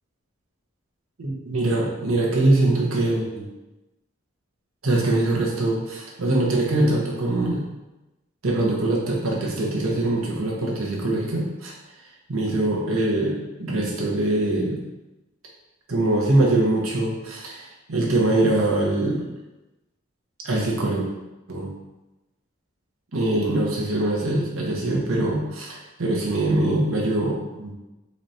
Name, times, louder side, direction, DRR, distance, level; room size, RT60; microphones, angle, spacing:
voice 1, 1.2-3.4 4.8-7.6 8.4-11.7 12.3-14.8 15.9-19.3 20.4-21.0 21.5-21.7 23.1-27.7, right 2 dB, 80° right, -2 dB, 0.9 m, -23 dB
4.2 x 3.2 x 2.7 m, 1.0 s
head